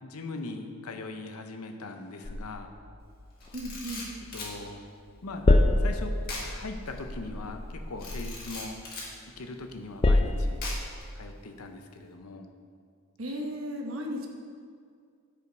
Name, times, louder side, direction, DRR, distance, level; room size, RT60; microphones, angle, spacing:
voice 1, 0.0-2.7 4.3-4.8 5.2-8.8 9.4-10.6 11.1-12.5, left 2 dB, 85° left, 5 dB, 0.8 m, -40 dB
sound 1, 2.2-4.8 5.1-9.3 9.7-11.0, left 2 dB, 25° left, 0.4 m, -28 dB
Camera, 3.4-4.6 6.2-6.5 6.9-7.0 8.0-9.1 10.6-11.0, left 2 dB, 45° left, 1.8 m, -39 dB
voice 2, 3.5-4.1 13.2-14.3, equal, 70° right, 1 dB, 1.1 m, -35 dB
9.4 x 5.0 x 5.1 m, 2.2 s
head